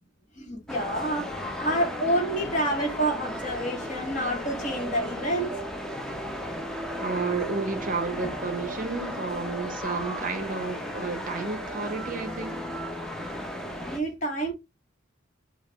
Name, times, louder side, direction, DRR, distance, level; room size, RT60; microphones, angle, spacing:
voice 1, 0.4-1.3 1.6-5.5 13.8-14.5, right 1 dB, 40° left, 1.3 m, -28 dB
sound 1, 0.7-14.0, equal, 5° left, 0.5 m, -35 dB
voice 2, 7.0-12.6, right 4 dB, 40° right, 0.6 m, -31 dB
4.7 x 2.3 x 3.3 m
head